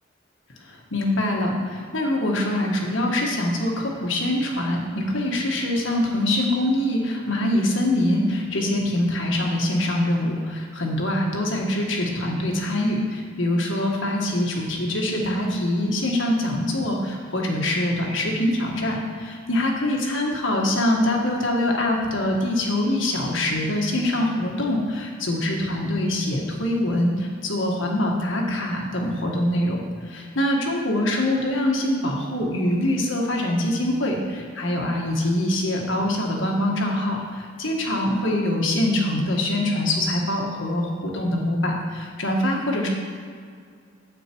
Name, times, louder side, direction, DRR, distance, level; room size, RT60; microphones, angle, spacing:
voice 1, 0.6-42.9, left 1 dB, 70° left, 0 dB, 1.6 m, -24 dB
9.2 x 8.2 x 4.6 m, 2.1 s
head